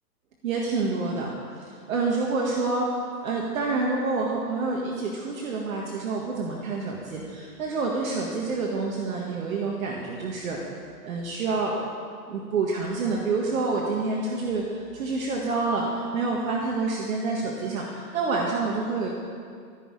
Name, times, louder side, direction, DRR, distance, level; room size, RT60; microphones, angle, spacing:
voice 1, 0.4-1.3 1.6-2.9 3.2-10.6 11.0-11.8 12.3-19.1, right 3 dB, 55° right, -2 dB, 1.8 m, -28 dB
15.0 x 6.4 x 8.8 m, 2.2 s
hypercardioid pair, 160°, 49 cm